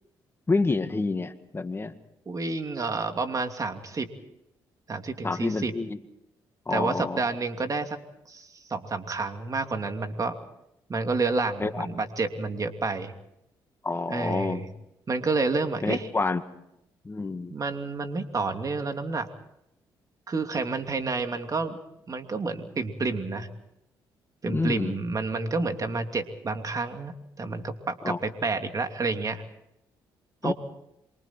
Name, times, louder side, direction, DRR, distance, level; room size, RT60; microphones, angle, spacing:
voice 1, 0.5-1.9 5.2-6.0 6.7-7.2 11.6-11.9 13.8-14.7 15.8-16.4 17.0-17.5 24.4-24.9 28.0-28.2 30.4-30.5, left 3 dB, 25° left, 8 dB, 2.0 m, -28 dB
voice 2, 2.3-4.1 4.9-5.7 6.7-8.0 8.3-10.3 10.9-13.1 14.1-14.7 15.1-16.1 17.5-19.3 20.3-21.8 22.1-23.5 24.4-29.4 30.4-30.5, right 3 dB, 40° right, 6 dB, 2.8 m, -29 dB
27.0 x 24.5 x 4.5 m, 0.82 s
supercardioid pair, 65°, 9 cm